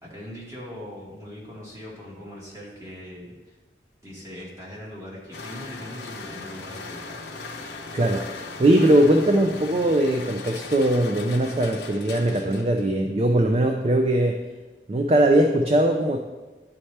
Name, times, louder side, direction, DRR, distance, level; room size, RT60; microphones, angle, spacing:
voice 1, 0.0-3.6 4.0-7.2, equal, 20° right, -5 dB, 1.7 m, -40 dB
sound 1, 5.3-13.0, left 3 dB, 80° left, 0.8 m, -38 dB
voice 2, 7.9-14.4 14.9-16.2, right 1 dB, 35° right, 4 dB, 0.4 m, -20 dB
10.5 x 4.2 x 3.3 m, 1.2 s
head